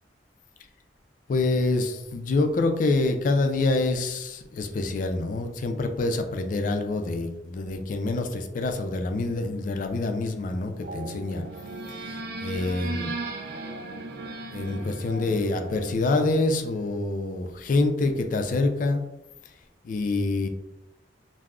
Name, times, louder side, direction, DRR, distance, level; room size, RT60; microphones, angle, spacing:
voice 1, 1.3-11.4 11.9-13.1 14.5-19.0 19.8-20.5, left 2 dB, 50° left, 6 dB, 0.3 m, -26 dB
sound 1, 10.8-17.0, right 3 dB, 60° right, 0.3 m, -37 dB
3.5 x 2.0 x 2.3 m, 0.90 s
head